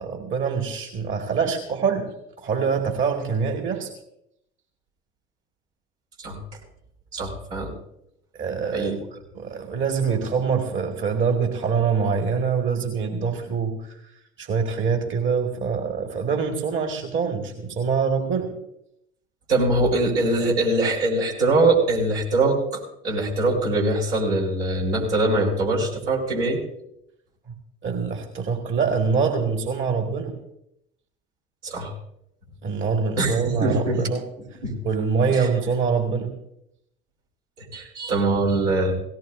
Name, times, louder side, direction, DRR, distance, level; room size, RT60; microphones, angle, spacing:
voice 1, 0.0-2.1 2.4-3.9 8.4-8.9 9.3-14.0 14.4-18.5 27.8-30.3 32.6-34.2 34.8-36.3, right 5 dB, 40° right, 4 dB, 1.9 m, -24 dB
voice 2, 7.1-7.7 8.7-9.0 19.5-26.6 31.6-31.9 33.2-34.0 34.6-34.7 35.3-35.5 37.7-38.9, right 2 dB, 80° right, -3 dB, 4.2 m, -22 dB
18.0 x 17.5 x 2.6 m, 0.79 s
hypercardioid pair, 65°, 30 cm